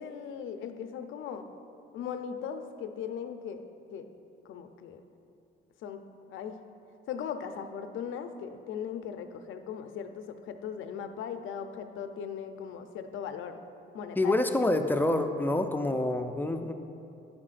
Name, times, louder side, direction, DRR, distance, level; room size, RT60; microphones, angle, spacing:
voice 1, 0.0-1.5 1.9-3.7 3.9-4.1 4.4-5.0 5.8-6.6 7.1-13.6 13.9-14.3, left 7 dB, 80° left, 8 dB, 0.6 m, -38 dB
voice 2, 14.2-16.7, left 2 dB, 10° left, 6 dB, 0.4 m, -27 dB
10.5 x 9.7 x 2.5 m, 2.8 s
cardioid pair, 130°, 20 cm